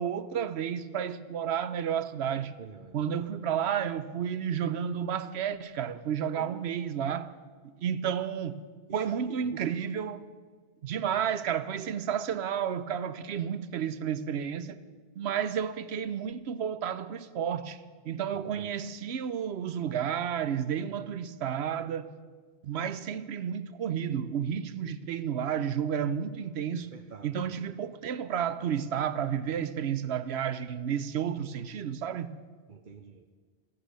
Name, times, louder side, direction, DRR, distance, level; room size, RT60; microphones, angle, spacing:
voice 1, 0.0-2.5 2.9-7.3 7.8-8.5 8.9-10.2 10.8-14.8 15.2-17.8 18.0-22.1 22.6-26.9 27.2-32.3, right 8 dB, 85° right, 1.0 m, -31 dB
voice 2, 2.6-3.0 6.4-6.7 8.9-9.6 18.4-18.7 26.9-27.5 32.7-33.2, right 6 dB, 55° right, 0.8 m, -47 dB
15.5 x 8.9 x 8.1 m
omnidirectional pair, 1.1 m